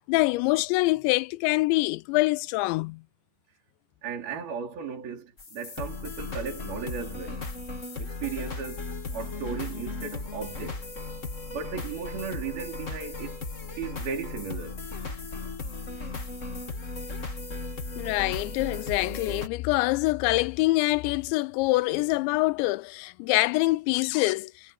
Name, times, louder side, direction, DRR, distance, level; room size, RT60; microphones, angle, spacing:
voice 1, 0.1-3.0 18.0-24.5, left 21 dB, 85° left, 2.9 m, -25 dB
voice 2, 4.0-7.5 8.0-8.9 9.1-10.9 11.5-14.8 16.0-16.1, right 6 dB, 55° right, 6.2 m, -36 dB
sound 1, 5.4-19.5, left 3 dB, 55° left, 0.8 m, -36 dB
omnidirectional pair, 5.1 m